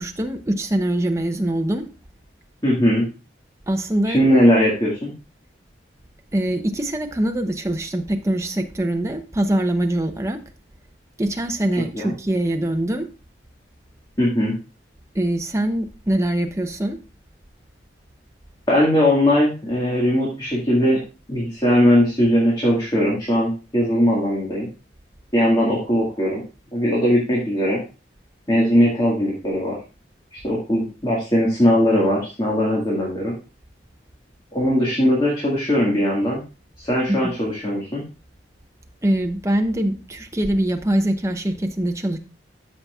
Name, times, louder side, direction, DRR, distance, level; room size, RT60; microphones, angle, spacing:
voice 1, 0.0-1.8 3.7-4.2 6.3-10.4 11.2-13.1 15.1-17.0 39.0-42.2, right 1 dB, 15° right, 5 dB, 0.7 m, -23 dB
voice 2, 2.6-3.1 4.0-5.1 11.9-12.1 14.2-14.5 18.7-21.0 21.3-24.7 25.3-26.4 26.7-27.8 28.5-29.8 30.3-33.3 34.5-36.4 36.8-38.0, equal, 25° left, -4 dB, 1.8 m, -19 dB
13.5 x 5.8 x 2.4 m, 0.32 s
head